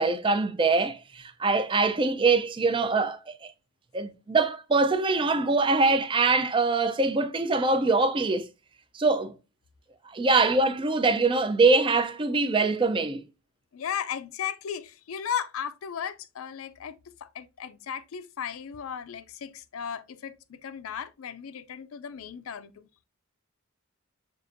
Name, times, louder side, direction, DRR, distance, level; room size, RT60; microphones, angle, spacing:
voice 1, 0.0-3.5 3.9-8.5 8.9-9.3 10.1-13.2, right 3 dB, 25° right, 0.4 m, -23 dB
voice 2, 13.7-23.0, left 8 dB, 75° left, 0.4 m, -36 dB
6.3 x 2.5 x 2.5 m
head